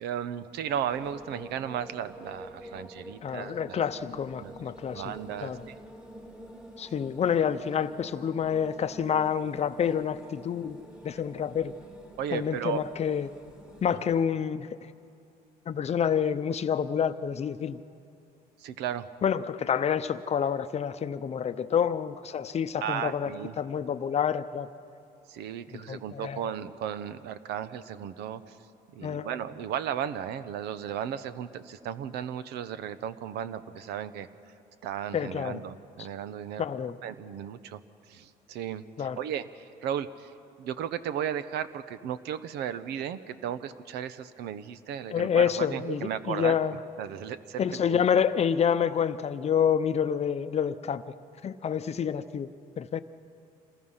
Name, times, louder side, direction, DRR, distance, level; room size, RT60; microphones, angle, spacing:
voice 1, 0.0-3.8 4.4-4.5 4.9-5.7 12.2-12.8 18.6-19.1 22.8-23.5 25.3-28.6 28.9-34.3 34.8-36.7 37.0-37.8 38.1-40.3 40.6-46.6 47.0-48.0, right 9 dB, 80° right, 13 dB, 0.9 m, -35 dB
sound 1, 0.9-14.2, equal, 5° right, 2.3 m, -48 dB
voice 2, 3.2-5.0 5.4-5.6 6.8-10.8 11.0-11.7 12.3-13.3 13.8-14.7 15.7-17.8 19.2-24.7 25.7-26.4 29.0-29.3 35.1-35.6 36.6-37.0 39.0-39.2 45.1-46.8 47.6-51.0 51.4-52.5 52.8-53.0, left 8 dB, 40° left, 12 dB, 0.7 m, -28 dB
27.0 x 20.0 x 5.7 m, 2.6 s
cardioid pair, 110°, 17 cm